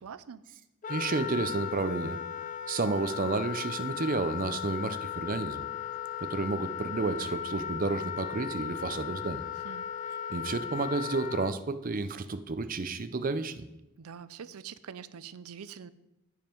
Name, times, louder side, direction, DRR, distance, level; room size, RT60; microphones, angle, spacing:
voice 1, 0.0-0.4 9.6-9.9 14.0-15.9, right 7 dB, 90° right, 16 dB, 0.5 m, -44 dB
Wind instrument woodwind instrument, 0.8-11.5, left 9 dB, 35° left, 0.3 m, -37 dB
voice 2, 0.9-2.2 2.7-5.6 6.2-9.5 10.3-13.6, right 3 dB, 40° right, 11 dB, 0.5 m, -31 dB
14.0 x 5.5 x 4.5 m, 0.95 s
head